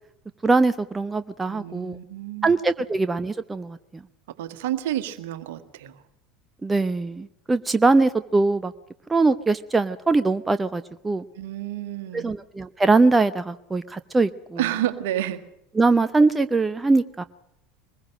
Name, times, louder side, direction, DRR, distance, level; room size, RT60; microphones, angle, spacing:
voice 1, 0.4-2.0 2.4-3.8 6.6-8.7 9.1-11.2 12.1-14.6 15.8-17.2, right 3 dB, 15° right, 12 dB, 0.7 m, -22 dB
voice 2, 1.5-2.5 4.3-6.0 11.3-12.3 14.6-15.4, right 13 dB, 60° right, 10 dB, 1.7 m, -30 dB
23.0 x 20.5 x 6.4 m, 0.81 s
figure-of-eight pair, 70°, 0 cm